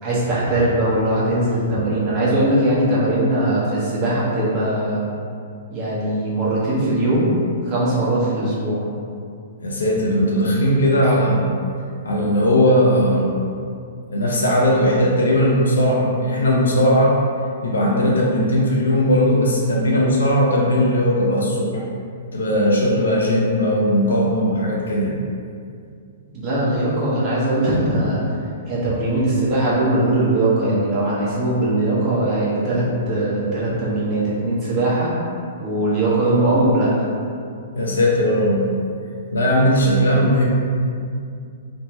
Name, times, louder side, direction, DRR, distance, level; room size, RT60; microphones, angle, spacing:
voice 1, 0.0-5.0 5.7-8.9 26.3-28.2 28.7-35.1 35.6-36.9, right 1 dB, 30° right, -8 dB, 1.1 m, -20 dB
voice 2, 9.6-11.5 12.0-13.4 14.1-17.1 17.6-21.8 22.3-25.2 37.8-38.7 39.3-40.4, equal, 90° left, -3 dB, 0.6 m, -18 dB
3.3 x 2.1 x 2.8 m, 2.4 s
hypercardioid pair, 130°, 0 cm